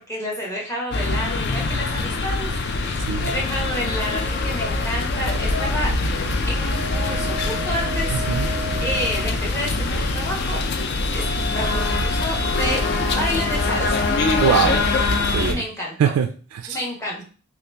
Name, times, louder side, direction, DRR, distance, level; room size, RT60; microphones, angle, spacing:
voice 1, 0.1-5.9 6.5-10.6 11.1-11.3 11.5-14.1 15.4-16.1 16.7-17.2, equal, 10° left, -3 dB, 0.8 m, -30 dB
sound 1, 0.9-15.5, left 3 dB, 45° left, 0.4 m, -23 dB
sound 2, 3.4-4.9 6.5-9.4 11.2-14.3, equal, 75° left, 1.8 m, -34 dB
voice 2, 8.1-8.5 14.4-15.0 15.3-15.6 16.0-16.8, right 7 dB, 80° right, 6 dB, 0.3 m, -22 dB
2.9 x 2.9 x 3.3 m, 0.40 s
head